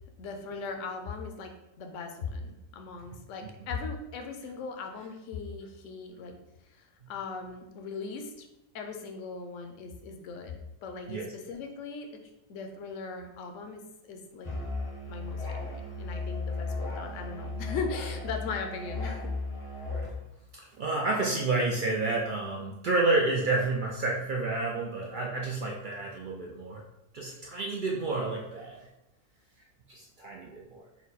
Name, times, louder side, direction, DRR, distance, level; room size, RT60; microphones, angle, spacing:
voice 1, 0.2-1.5 1.8-6.4 6.7-8.5 8.7-12.1 12.5-14.5 15.1-19.3, left 4 dB, 70° left, 4 dB, 0.9 m, -39 dB
Musical instrument, 14.4-20.2, left 3 dB, 30° left, 0.6 m, -35 dB
voice 2, 20.5-26.8 27.1-28.8 29.9-30.8, right 3 dB, 70° right, -1 dB, 0.4 m, -30 dB
4.4 x 2.2 x 4.0 m, 0.90 s
omnidirectional pair, 1.4 m